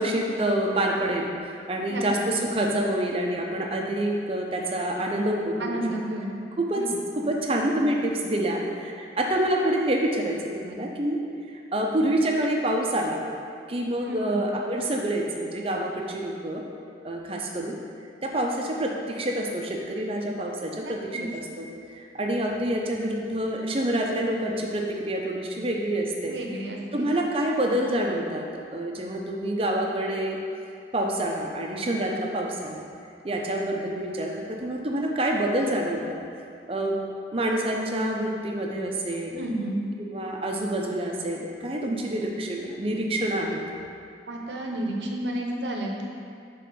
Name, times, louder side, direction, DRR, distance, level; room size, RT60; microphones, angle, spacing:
voice 1, 0.0-5.8 6.6-6.8 7.2-11.2 11.7-13.2 13.7-16.6 17.0-17.8 18.2-21.2 21.6-21.7 21.9-26.3 26.9-28.5 28.7-30.4 30.9-32.8 33.2-36.2 36.6-37.0 37.3-39.4 40.1-43.6, right 1 dB, 30° right, 0 dB, 0.6 m, -27 dB
voice 2, 5.6-6.4 6.8-7.0 14.0-14.4 20.8-21.3 26.3-27.1 39.4-39.9 44.3-46.0, right 1 dB, 85° right, 0 dB, 0.8 m, -31 dB
6.0 x 3.7 x 5.3 m, 2.4 s
head